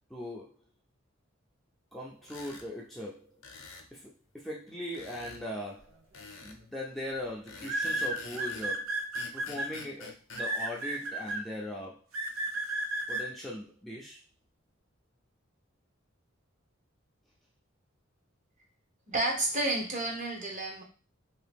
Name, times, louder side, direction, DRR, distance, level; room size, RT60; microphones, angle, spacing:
voice 1, 0.1-0.6 1.9-3.4 3.9-6.1 6.4-9.0 9.3-12.1 13.1-14.2, left 1 dB, ahead, -4 dB, 0.5 m, -40 dB
sound 1, 2.2-2.7 3.4-3.9 4.9-5.4 6.1-6.6 7.5-8.7 9.1-10.5, left 3 dB, 70° left, 0.7 m, -47 dB
sound 2, 6.2-6.4 7.6-9.7 10.4-11.4 12.1-13.2, right 2 dB, 85° right, 0.7 m, -32 dB
voice 2, 19.1-20.8, right 2 dB, 35° right, 0 dB, 1.0 m, -30 dB
2.9 x 2.8 x 3.4 m, 0.34 s
head